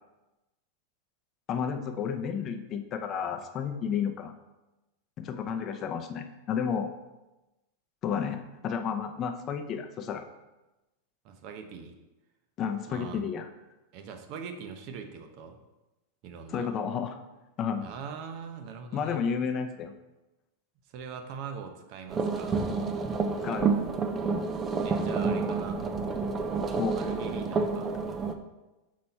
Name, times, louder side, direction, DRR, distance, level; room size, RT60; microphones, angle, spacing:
voice 1, 1.5-4.3 5.2-6.9 8.0-10.2 12.6-13.5 16.5-17.1 17.6-17.9 18.9-19.9 23.4-23.7 26.8-27.0, left 7 dB, 35° left, 6 dB, 0.7 m, -31 dB
voice 2, 11.2-11.9 12.9-13.2 13.9-15.6 16.2-16.7 17.8-19.2 20.9-22.5 24.8-25.9 26.9-27.9, right 6 dB, 50° right, 6 dB, 0.9 m, -42 dB
sound 1, 22.1-28.3, right 4 dB, 25° right, 0.6 m, -29 dB
6.2 x 4.1 x 4.4 m, 1.0 s
hypercardioid pair, 120°, 0 cm